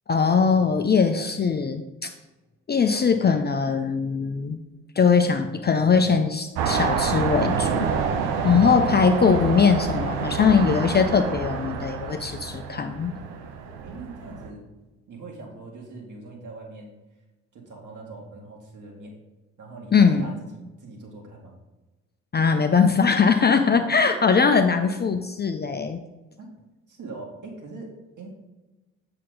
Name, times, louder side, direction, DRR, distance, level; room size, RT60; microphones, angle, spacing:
voice 1, 0.1-2.1 2.7-4.6 5.0-7.9 8.4-13.1 19.9-20.3 22.3-26.0, left 5 dB, 25° left, 7 dB, 0.6 m, -21 dB
sound 1, 6.5-14.5, right 6 dB, 70° right, 0.9 m, -28 dB
voice 2, 8.3-9.0 13.8-14.7 15.1-16.9 17.5-19.1 19.6-21.6 23.5-24.1 26.4-26.5 26.9-28.3, right 3 dB, 50° right, 0 dB, 2.2 m, -41 dB
7.5 x 5.8 x 4.0 m, 1.1 s
figure-of-eight pair, 45°, 40 cm